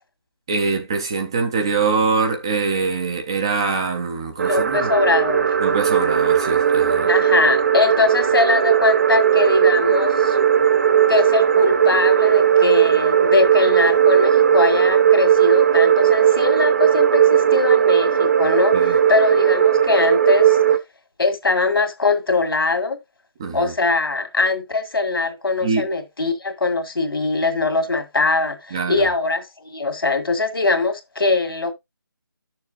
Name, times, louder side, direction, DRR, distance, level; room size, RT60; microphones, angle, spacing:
voice 1, 0.5-4.9 5.6-7.1 18.7-19.0 23.4-23.7 25.6-25.9 28.7-29.0, right 4 dB, 10° right, 0.4 m, -23 dB
voice 2, 4.4-5.6 7.1-10.4 11.1-20.6 21.2-23.0 23.5-29.5 29.7-31.7, left 3 dB, 80° left, 2.0 m, -21 dB
sound 1, 4.4-20.8, right 8 dB, 45° right, 0.9 m, -17 dB
10.5 x 6.7 x 2.5 m
figure-of-eight pair, 165°, 12 cm